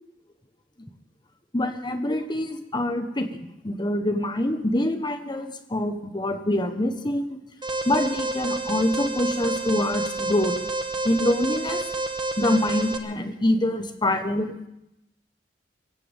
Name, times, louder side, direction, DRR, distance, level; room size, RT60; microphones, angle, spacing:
voice 1, 1.5-3.3 3.6-7.4 7.8-10.5 11.0-11.8 12.4-14.7, left 1 dB, 25° left, 7 dB, 1.2 m, -25 dB
Alarm, 7.6-13.0, right 2 dB, 25° right, 1.3 m, -29 dB
24.5 x 16.0 x 3.6 m, 0.87 s
head